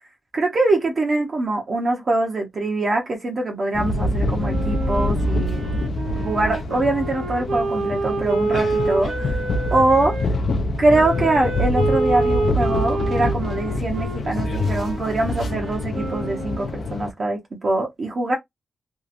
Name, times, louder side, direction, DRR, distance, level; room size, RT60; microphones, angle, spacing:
voice 1, 0.3-5.7 6.2-9.4 9.7-10.2 10.8-18.4, right 2 dB, 50° right, 0.7 m, -23 dB
sound 1, 3.7-17.1, left 2 dB, 65° left, 0.4 m, -25 dB
Wind instrument woodwind instrument, 4.4-10.3 10.9-16.8, right 3 dB, 85° right, 0.7 m, -28 dB
2.8 x 2.4 x 2.5 m
wide cardioid pair, 115°, 0 cm